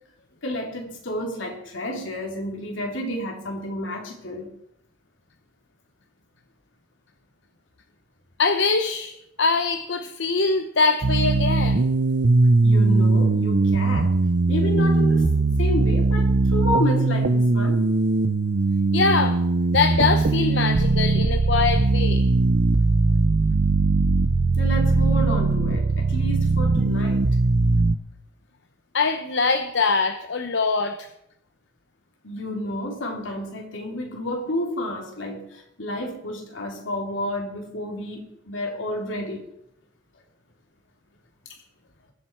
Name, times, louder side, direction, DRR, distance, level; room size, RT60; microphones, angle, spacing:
voice 1, 0.4-4.5 12.6-14.1 14.5-15.3 15.6-17.8 24.6-27.2 32.2-39.5, equal, 85° left, 1 dB, 3.0 m, -30 dB
voice 2, 8.4-9.1 9.4-11.8 18.9-19.4 19.7-22.2 28.9-31.1, left 4 dB, 65° left, 7 dB, 0.9 m, -23 dB
sound 1, 11.0-28.0, right 3 dB, 65° right, 0.6 m, -20 dB
21.0 x 7.7 x 4.5 m, 0.77 s
head